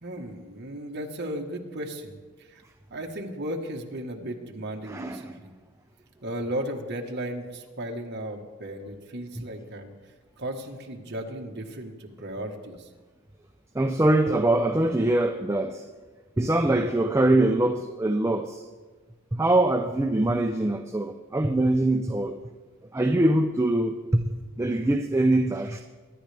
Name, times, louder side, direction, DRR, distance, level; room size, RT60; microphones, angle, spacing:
voice 1, 0.0-2.6 2.9-5.5 6.2-9.9 10.4-12.9, right 1 dB, 55° right, 1.4 m, -35 dB
voice 2, 4.8-5.3 9.4-9.5 13.7-15.9 16.4-18.7 19.3-22.4 22.9-25.8, right 1 dB, 15° right, 0.5 m, -23 dB
23.0 x 10.5 x 3.4 m
head